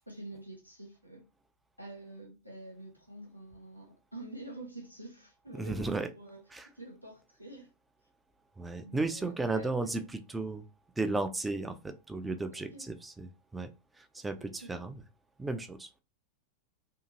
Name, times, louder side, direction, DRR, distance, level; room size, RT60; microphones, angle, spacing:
voice 1, 0.1-1.2 1.8-7.7 8.8-10.1 12.5-12.9 14.4-14.8, right 1 dB, 90° left, 0.9 m, -48 dB
voice 2, 5.5-6.1 6.5-6.7 8.6-10.6 11.0-13.7 14.0-15.0 15.4-16.0, right 3 dB, 10° right, 0.3 m, -34 dB
2.8 x 2.4 x 2.5 m
figure-of-eight pair, 90°, 0 cm